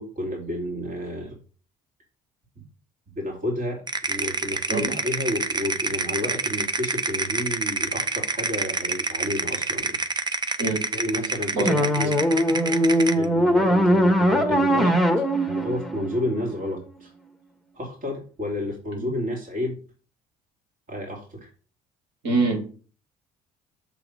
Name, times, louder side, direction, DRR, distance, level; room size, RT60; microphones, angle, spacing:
voice 1, 0.2-1.3 2.6-2.7 3.2-3.8 4.1-10.0 10.9-11.7 11.9-12.1 13.1-15.0 15.4-17.1 17.7-19.8 20.9-21.5, left 1 dB, 45° right, 0 dB, 2.9 m, -30 dB
sound 1, 3.9-13.2, right 3 dB, 25° right, 0.7 m, -27 dB
voice 2, 11.5-11.9 19.0-19.1 22.2-22.6, right 3 dB, 85° right, 0 dB, 2.9 m, -24 dB
sound 2, 11.6-16.8, equal, ahead, 1.2 m, -21 dB
7.0 x 3.6 x 6.1 m, 0.39 s
hypercardioid pair, 65°, 19 cm